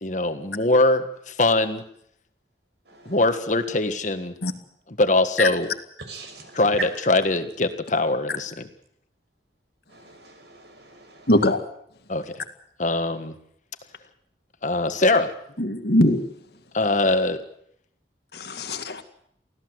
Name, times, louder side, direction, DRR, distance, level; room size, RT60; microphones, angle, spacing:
voice 1, 0.0-1.8 3.1-4.3 5.0-5.7 6.5-8.7 12.1-12.3 12.8-13.3 14.6-15.3 16.7-17.4, left 2 dB, 45° left, 9 dB, 1.6 m, -22 dB
voice 2, 6.1-6.6 9.9-11.3, right 4 dB, 70° right, 6 dB, 6.0 m, -45 dB
voice 3, 11.3-11.6 15.6-16.2 18.3-19.0, left 1 dB, 60° left, 8 dB, 2.1 m, -21 dB
25.0 x 16.0 x 8.0 m, 0.71 s
head